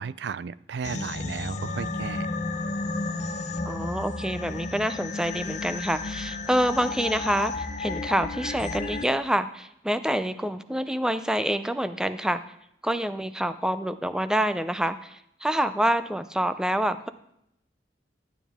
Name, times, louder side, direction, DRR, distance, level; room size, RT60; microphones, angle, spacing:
voice 1, 0.0-2.3, right 6 dB, 70° right, 18 dB, 0.4 m, -34 dB
sound 1, 0.8-9.0, left 3 dB, 40° left, 0.7 m, -32 dB
voice 2, 3.7-12.4 12.8-17.1, equal, 5° right, 12 dB, 0.4 m, -27 dB
12.0 x 9.1 x 3.5 m, 0.76 s
head